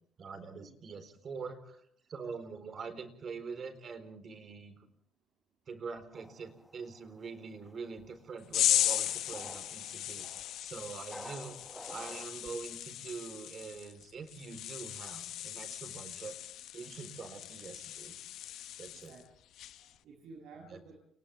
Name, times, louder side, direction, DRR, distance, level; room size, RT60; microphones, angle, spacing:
voice 1, 0.2-1.8 2.1-4.9 5.7-16.4 16.7-18.2 18.8-19.1 20.7-20.8, right 5 dB, 40° right, 10 dB, 4.1 m, -44 dB
sound 1, 6.1-12.3, equal, ahead, 1.3 m, -51 dB
sound 2, 8.5-19.2 19.6-19.9, left 12 dB, 70° left, 1.0 m, -36 dB
voice 2, 18.9-19.3 19.6-20.9, right 4 dB, 80° right, -1 dB, 7.7 m, -53 dB
30.0 x 29.5 x 3.5 m, 0.66 s
cardioid pair, 145°, 0 cm